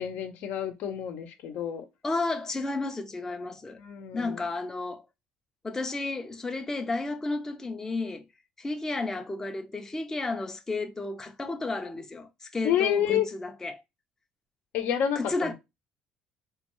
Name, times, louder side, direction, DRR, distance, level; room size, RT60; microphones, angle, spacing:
voice 1, 0.0-1.8 3.8-4.4 12.6-13.3 14.7-15.5, left 10 dB, 70° left, 0.7 m, -29 dB
voice 2, 2.0-3.8 4.1-5.0 5.6-8.2 8.6-13.8 15.2-15.5, left 3 dB, 15° left, 0.5 m, -32 dB
3.5 x 2.2 x 2.9 m
cardioid pair, 105°, 3 cm